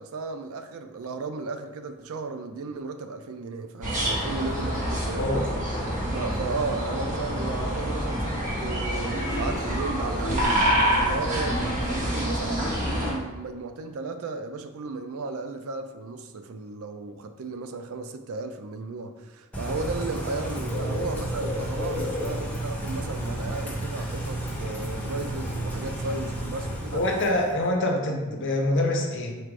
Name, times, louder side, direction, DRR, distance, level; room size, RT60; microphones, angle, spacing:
voice 1, 0.0-5.4 6.1-10.7 11.0-27.0, right 3 dB, 75° right, 0.4 m, -35 dB
sound 1, 3.8-13.1, equal, 35° right, 1.2 m, -27 dB
voice 2, 5.1-5.5 26.9-29.4, left 1 dB, 60° left, 0.7 m, -25 dB
Bird / Rain, 19.5-27.7, right 1 dB, 5° left, 0.9 m, -31 dB
4.6 x 2.5 x 4.6 m
head